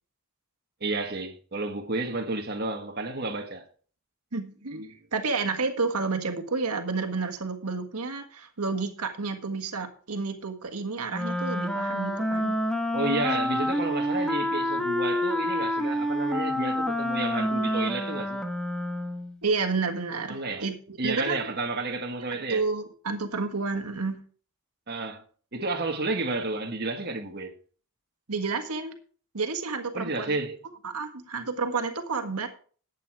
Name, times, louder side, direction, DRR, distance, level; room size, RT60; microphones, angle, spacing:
voice 1, 0.8-3.7 12.9-18.4 20.3-20.6 21.0-22.6 24.9-25.2 25.5-27.5 29.9-30.6, right 2 dB, 45° right, 1.5 m, -31 dB
voice 2, 4.3-12.6 19.4-21.4 22.3-24.2 28.3-28.9 29.3-30.4 30.8-32.5, right 4 dB, 85° right, 1.6 m, -30 dB
Wind instrument woodwind instrument, 11.1-19.3, left 1 dB, 5° left, 1.2 m, -28 dB
12.0 x 8.4 x 4.7 m
head